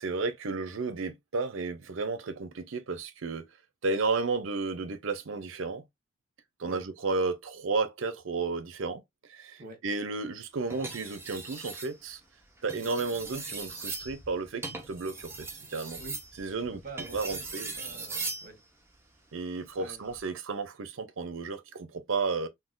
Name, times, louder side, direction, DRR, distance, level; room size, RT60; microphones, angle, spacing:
voice 1, 0.0-3.4 3.8-5.8 6.6-9.0 9.3-12.2 12.6-16.0 16.4-16.8 17.1-17.7 19.3-22.5, right 4 dB, 70° right, 0.6 m, -33 dB
sound 1, 10.7-11.9 12.6-18.5 19.9-20.2, right 3 dB, 10° right, 0.6 m, -39 dB
voice 2, 16.6-17.4 17.8-18.6 19.8-20.1, right 2 dB, 45° right, 1.1 m, -46 dB
3.8 x 2.2 x 2.4 m
head